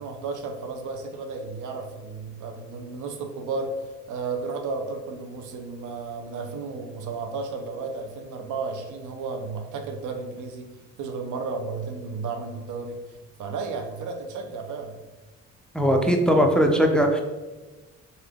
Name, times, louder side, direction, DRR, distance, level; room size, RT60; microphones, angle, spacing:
voice 1, 0.0-15.0, right 4 dB, 80° right, 5 dB, 0.7 m, -33 dB
voice 2, 15.7-17.2, equal, 5° left, 3 dB, 0.5 m, -19 dB
3.9 x 3.7 x 3.5 m, 1.2 s
cardioid pair, 90°, 30 cm